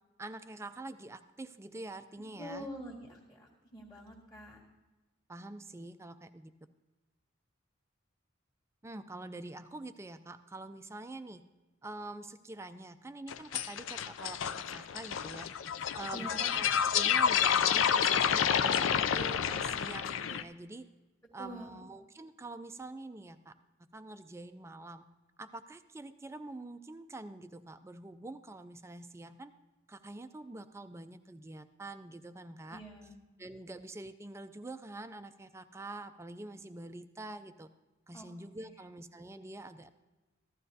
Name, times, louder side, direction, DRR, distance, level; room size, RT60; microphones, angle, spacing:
voice 1, 0.2-2.7 5.3-6.5 8.8-11.4 11.8-15.5 15.9-20.8 21.3-23.5 23.9-25.1 25.4-29.5 29.9-32.8 33.4-37.7 38.1-39.9, right 2 dB, 15° right, 10 dB, 0.3 m, -46 dB
voice 2, 2.4-4.6 16.1-16.5 21.4-21.8 32.7-33.2 38.1-38.3 38.6-38.7, equal, 15° left, -8 dB, 1.6 m, -46 dB
sound 1, 13.3-20.4, left 8 dB, 75° left, 0.4 m, -29 dB
15.0 x 12.0 x 2.7 m, 1.1 s
head